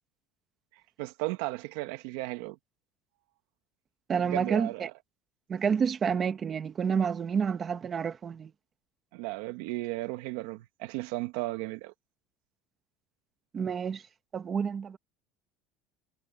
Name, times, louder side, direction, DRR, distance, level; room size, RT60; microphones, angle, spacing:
voice 1, 1.0-2.6 4.1-4.9 9.1-11.9, right 20 dB, 80° right, 1.7 m, -35 dB
voice 2, 4.1-4.9 5.5-8.5 13.5-14.0 14.3-15.0, right 6 dB, 25° right, 1.4 m, -29 dB
cardioid pair, 160°, 0 cm